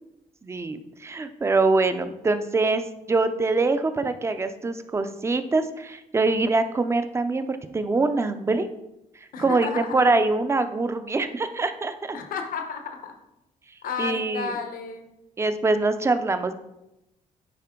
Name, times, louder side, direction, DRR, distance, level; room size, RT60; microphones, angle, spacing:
voice 1, 0.4-2.8 3.1-8.7 9.4-12.2 14.0-14.5 15.4-16.5, right 3 dB, 20° right, 10 dB, 0.5 m, -24 dB
voice 2, 9.3-10.1 12.1-13.2 13.8-15.1, left 6 dB, 70° left, 4 dB, 1.0 m, -32 dB
10.0 x 4.3 x 3.7 m, 0.89 s
cardioid pair, 155°, 15 cm